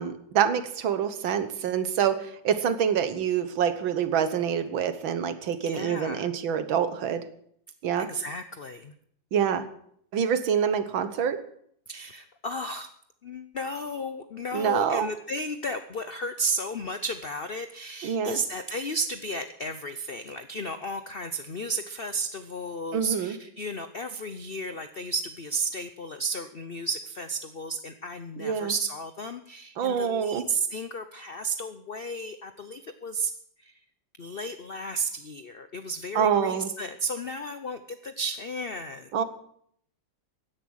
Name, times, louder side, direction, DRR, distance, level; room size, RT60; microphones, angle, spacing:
voice 1, 0.0-7.2 7.8-8.1 9.3-9.6 10.1-11.4 14.5-15.1 18.0-18.4 22.9-23.4 28.4-28.7 29.8-30.4 36.2-36.7 39.1-39.2, right 8 dB, 80° right, 11 dB, 1.9 m, -26 dB
voice 2, 5.6-6.3 8.0-8.9 11.9-12.9 13.2-33.3 33.6-33.8 34.2-39.2, right 2 dB, 90° left, 10 dB, 0.5 m, -33 dB
16.0 x 11.0 x 6.4 m, 0.67 s
omnidirectional pair, 2.1 m